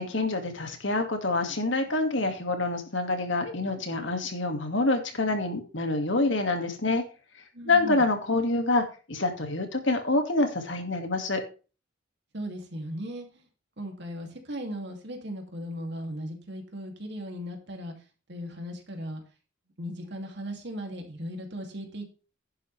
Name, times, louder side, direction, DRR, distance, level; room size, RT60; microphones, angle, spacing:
voice 1, 0.0-7.0 7.7-11.4, left 2 dB, 70° left, 5 dB, 2.2 m, -26 dB
voice 2, 7.5-8.0 12.3-13.5 13.8-17.9 18.3-19.2 19.8-22.1, equal, 60° right, 3 dB, 2.7 m, -37 dB
11.0 x 9.5 x 3.4 m, 0.34 s
head